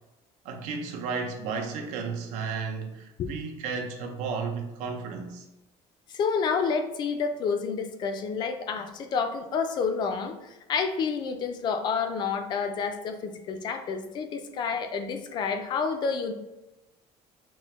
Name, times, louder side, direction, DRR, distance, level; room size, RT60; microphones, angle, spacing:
voice 1, 0.4-5.4, right 5 dB, 70° right, 0.7 m, -33 dB
voice 2, 6.1-16.3, left 5 dB, 35° left, 0.4 m, -29 dB
6.0 x 2.1 x 3.0 m
cardioid pair, 165°, 12 cm